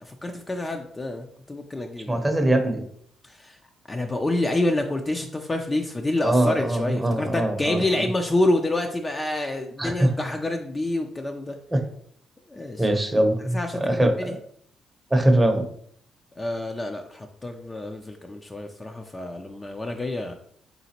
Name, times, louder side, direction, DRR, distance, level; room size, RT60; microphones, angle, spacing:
voice 1, 0.0-2.3 3.3-3.6 3.9-11.6 12.5-12.8 13.5-14.3 16.4-20.3, left 2 dB, 20° left, 4 dB, 0.4 m, -28 dB
voice 2, 2.1-2.8 6.2-8.1 9.8-10.1 11.7-11.8 12.8-14.4 15.1-15.7, right 1 dB, 15° right, 5 dB, 0.7 m, -22 dB
4.0 x 3.5 x 2.8 m, 0.63 s
cardioid pair, 90°, 0 cm